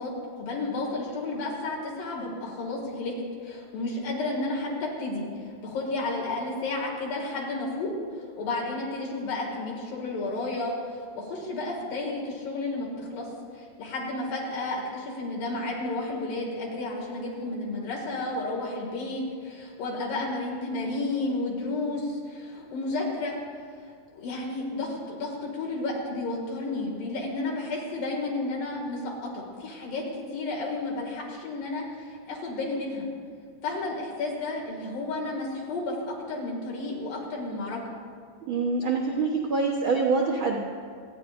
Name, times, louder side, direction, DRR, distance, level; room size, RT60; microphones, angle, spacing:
voice 1, 0.0-3.2 3.4-10.7 11.2-23.4 24.2-33.1 33.6-37.8, left 2 dB, 70° left, -3 dB, 3.8 m, -32 dB
voice 2, 38.5-40.6, right 4 dB, 75° right, -2 dB, 1.1 m, -25 dB
28.0 x 10.5 x 2.6 m, 2.1 s
omnidirectional pair, 4.0 m